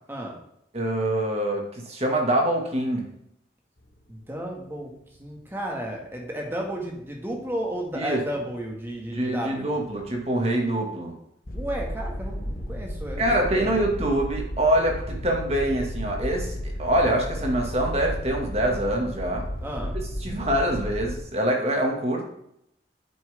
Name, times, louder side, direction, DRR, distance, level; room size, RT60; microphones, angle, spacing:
voice 1, 0.7-3.0 7.9-8.2 9.1-11.1 13.2-19.4 20.2-22.3, right 1 dB, 35° right, 1 dB, 1.9 m, -25 dB
sound 1, 3.9-4.8 5.8-6.4 7.4-8.3 8.7-9.0 9.4-10.4 11.5-21.2, equal, 50° left, 1.3 m, -33 dB
voice 2, 4.1-4.9 5.2-9.7 11.5-13.7 19.6-19.9, right 1 dB, 15° right, 0 dB, 1.8 m, -33 dB
9.1 x 7.7 x 3.5 m, 0.76 s
head